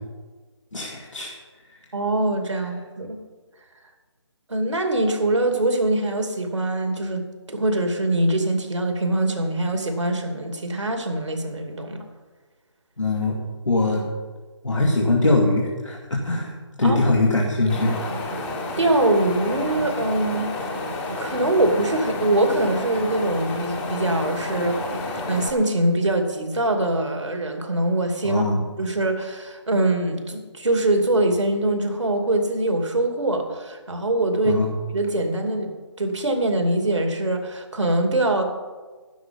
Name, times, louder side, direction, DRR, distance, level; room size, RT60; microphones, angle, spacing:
voice 1, 0.7-1.3 13.0-13.4 13.7-14.0 14.6-16.5 16.8-18.1 28.2-28.6 34.4-34.7, left 2 dB, 85° left, -2 dB, 2.5 m, -22 dB
voice 2, 1.9-3.2 4.5-12.0 16.8-17.1 18.8-20.7 21.2-34.6 34.9-35.7 36.0-38.4, right 1 dB, 75° right, 4 dB, 2.7 m, -23 dB
Wind, 17.7-25.5, left 2 dB, 10° left, 1.1 m, -30 dB
12.0 x 10.5 x 5.3 m, 1.3 s
figure-of-eight pair, 160°, 15 cm